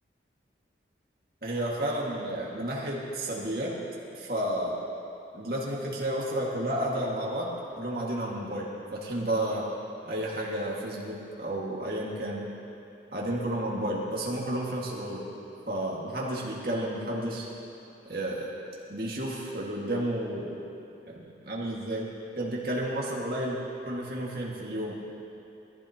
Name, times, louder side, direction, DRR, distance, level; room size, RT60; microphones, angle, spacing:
voice 1, 1.4-3.8 4.2-4.8 5.3-9.7 10.0-12.5 13.1-15.3 15.7-17.5 18.1-18.5 18.9-20.6 21.1-22.1 22.4-25.0, right 1 dB, 55° right, -4 dB, 1.9 m, -31 dB
22.5 x 14.5 x 2.9 m, 2.8 s
head